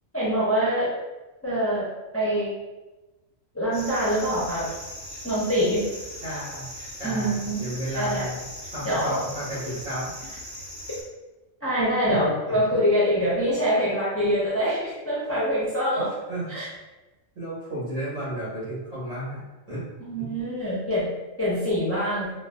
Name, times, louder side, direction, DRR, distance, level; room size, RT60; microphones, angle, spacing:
voice 1, 0.1-0.9 1.4-1.9 2.1-2.5 3.5-4.7 5.2-5.8 7.0-8.3 8.8-9.2 11.6-16.1 16.5-16.7 20.1-21.1 21.4-22.3, equal, 15° left, -8 dB, 0.5 m, -24 dB
sound 1, 3.7-11.0, equal, 35° right, 0.9 m, -39 dB
voice 2, 6.2-6.7 7.0-8.4 8.7-10.1 12.0-12.6 16.0-16.6 17.4-19.8 20.2-20.3, right 1 dB, 75° right, -9 dB, 2.0 m, -33 dB
3.8 x 2.2 x 2.2 m, 1.1 s
omnidirectional pair, 1.4 m